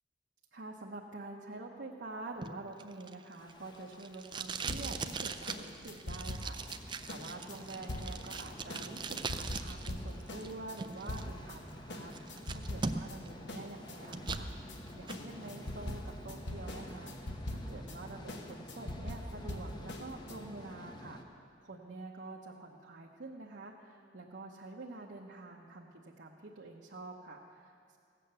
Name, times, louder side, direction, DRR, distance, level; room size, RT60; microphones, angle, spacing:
voice 1, 0.5-28.0, right 2 dB, 65° right, -2 dB, 0.9 m, -47 dB
Packing tape duct tape, 2.4-9.9 10.2-11.2 11.7-11.8 12.1-13.3 13.6-14.5 14.9-15.2, right 4 dB, 25° right, 0.4 m, -40 dB
sound 1, 3.4-21.2, left 1 dB, 25° left, 0.8 m, -50 dB
sound 2, 4.7-11.6 11.9-13.2 13.5-20.4, left 1 dB, 65° left, 1.1 m, -42 dB
16.0 x 8.5 x 6.8 m, 2.4 s
head